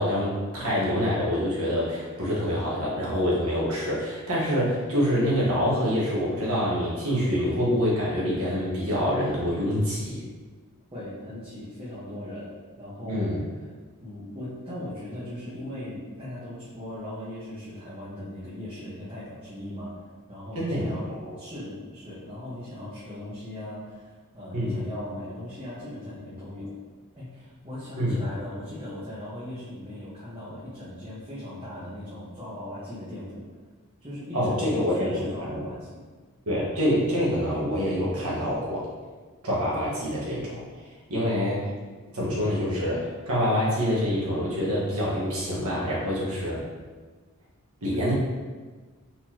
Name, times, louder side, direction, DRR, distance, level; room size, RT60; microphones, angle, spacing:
voice 1, 0.0-10.2 13.1-13.4 20.5-20.9 24.5-24.8 28.0-28.2 34.3-35.6 36.5-38.9 39.4-40.6 41.1-41.7 42.1-46.7 47.8-48.1, equal, 80° right, -6 dB, 1.5 m, -26 dB
voice 2, 10.9-12.5 12.8-13.4 14.0-20.0 20.3-21.1 21.4-26.7 27.1-33.4 34.0-36.0, left 1 dB, 20° right, -12 dB, 1.2 m, -38 dB
4.4 x 4.1 x 2.9 m, 1.4 s
head